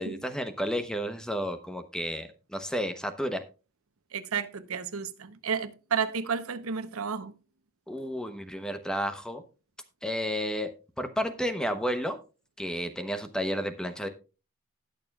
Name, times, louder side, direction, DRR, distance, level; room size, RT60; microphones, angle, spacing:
voice 1, 0.0-3.4 7.9-9.4 10.0-10.7 11.0-12.2 12.6-14.1, equal, 5° left, 0.8 m, -31 dB
voice 2, 4.1-7.3, right 6 dB, 90° right, 0.8 m, -32 dB
19.5 x 6.7 x 2.3 m
head